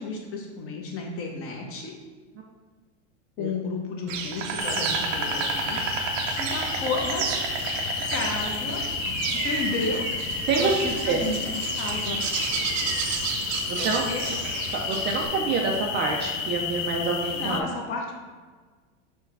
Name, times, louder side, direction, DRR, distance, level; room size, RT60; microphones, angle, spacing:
voice 1, 0.0-1.9 3.4-5.8 6.4-7.3 8.1-10.1 10.6-12.2 13.8-14.3 17.3-18.1, left 3 dB, 35° left, 1 dB, 0.8 m, -32 dB
Insect, 4.1-15.3, right 7 dB, 80° right, 0.6 m, -31 dB
sound 1, 4.6-17.6, left 6 dB, 75° left, 0.6 m, -31 dB
voice 2, 13.7-14.0 14.7-17.7, right 4 dB, 30° right, 0 dB, 0.3 m, -26 dB
4.5 x 2.2 x 4.6 m, 1.4 s
supercardioid pair, 125°, 38 cm